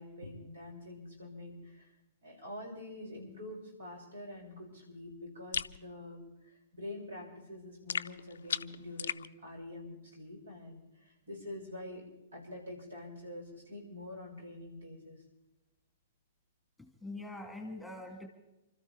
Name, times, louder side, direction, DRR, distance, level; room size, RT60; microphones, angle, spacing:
voice 1, 0.0-1.9 2.2-12.1 12.3-15.2, left 1 dB, 70° right, 0 dB, 6.8 m, -46 dB
sound 1, 5.5-5.8 7.9-9.3, left 7 dB, 65° left, 0.5 m, -36 dB
voice 2, 16.8-18.3, left 2 dB, ahead, 3 dB, 2.2 m, -44 dB
29.5 x 13.5 x 3.6 m, 0.96 s
figure-of-eight pair, 105°, 0 cm